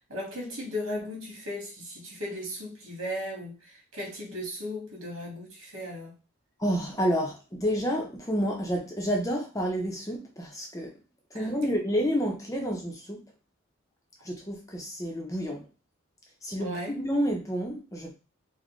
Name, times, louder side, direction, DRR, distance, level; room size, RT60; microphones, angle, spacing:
voice 1, 0.1-6.1 11.3-11.7 16.6-17.0, left 1 dB, 85° right, -2 dB, 1.7 m, -36 dB
voice 2, 6.6-10.9 11.3-13.2 14.2-15.7 16.4-18.1, equal, 15° left, 1 dB, 0.6 m, -29 dB
4.0 x 2.2 x 3.1 m, 0.31 s
head